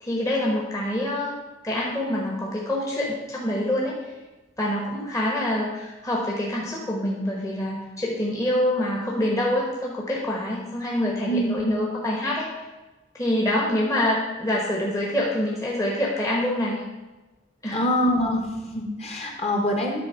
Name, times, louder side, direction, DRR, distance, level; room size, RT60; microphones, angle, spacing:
voice 1, 0.0-1.4 1.6-4.0 4.6-12.5 13.1-16.8 17.6-17.8, left 1 dB, 15° left, -4 dB, 1.1 m, -26 dB
voice 2, 11.3-11.6 17.7-20.0, equal, 35° left, 1 dB, 1.3 m, -25 dB
10.5 x 4.2 x 5.6 m, 1.1 s
head